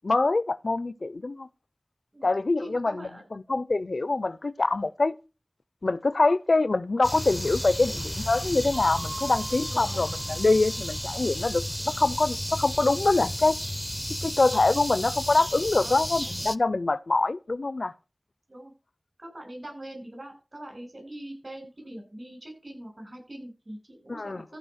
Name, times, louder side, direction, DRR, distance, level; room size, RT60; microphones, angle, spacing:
voice 1, 0.0-1.5 2.2-5.2 5.8-13.6 14.2-17.9 24.1-24.4, left 3 dB, 80° left, 0.5 m, -25 dB
voice 2, 2.6-3.2 7.9-8.0 9.7-10.0 15.8-16.0 18.5-18.7 19.2-24.6, right 1 dB, 50° right, 6.9 m, -42 dB
sound 1, 7.0-16.6, equal, ahead, 0.6 m, -33 dB
sound 2, 8.7-11.1, right 2 dB, 85° right, 2.1 m, -42 dB
14.5 x 5.1 x 6.2 m
wide cardioid pair, 45°, 0 cm